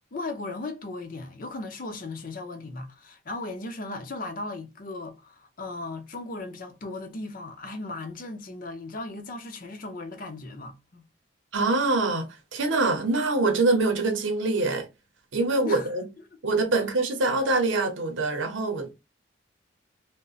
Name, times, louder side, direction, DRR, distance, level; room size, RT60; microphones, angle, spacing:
voice 1, 0.1-11.0 15.6-15.9, left 2 dB, 45° left, 0.6 m, -37 dB
voice 2, 11.5-14.9 15.3-16.1 16.4-18.9, right 3 dB, 80° right, 0.7 m, -24 dB
3.8 x 2.1 x 2.3 m
head